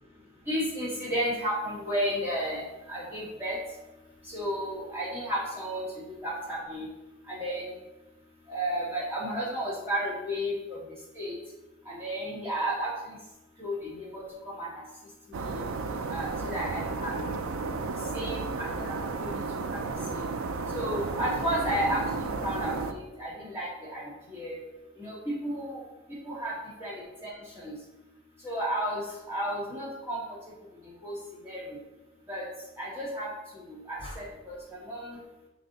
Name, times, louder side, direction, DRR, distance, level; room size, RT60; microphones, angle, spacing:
voice 1, 0.5-2.6 2.9-3.6 4.3-5.8 6.2-6.8 7.3-7.7 8.5-10.8 11.2-11.4 11.9-12.9 13.6-14.7 15.5-15.7 16.1-17.3 18.1-19.0 19.7-19.8 20.2-20.3 20.7-24.0 24.3-24.6 25.0-25.8 26.2-26.5 26.8-27.3 27.6-27.7 28.4-29.0 29.3-30.2 31.0-31.1 31.4-31.6 32.3-32.4 32.8-33.3 33.7-34.6 34.9-35.2, equal, 10° right, -7 dB, 1.9 m, -32 dB
sound 1, 15.3-22.9, right 4 dB, 85° right, 0.4 m, -33 dB
5.8 x 4.0 x 4.0 m, 1.0 s
head